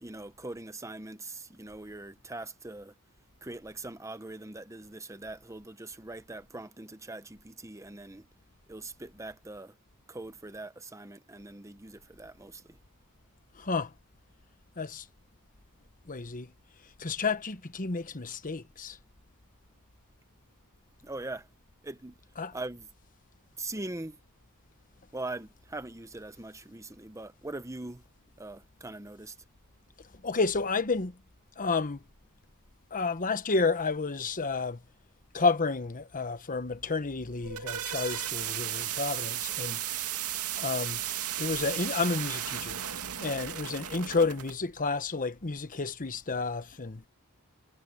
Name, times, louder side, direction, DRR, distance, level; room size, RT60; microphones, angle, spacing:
voice 1, 0.0-2.9 3.4-8.3 8.7-9.7 10.1-12.8 21.0-21.5 21.8-22.2 22.5-22.9 23.6-24.2 25.1-28.0 28.4-29.3, right 2 dB, 15° right, 1.0 m, -41 dB
voice 2, 13.6-13.9 14.8-15.1 16.1-16.5 17.0-19.0 22.4-22.5 30.2-31.2 31.6-32.0 32.9-34.8 35.3-39.8 40.6-41.0 41.4-42.8 43.2-47.0, left 4 dB, 40° left, 1.2 m, -30 dB
sound 1, 37.2-44.5, right 11 dB, 85° right, 2.5 m, -35 dB
head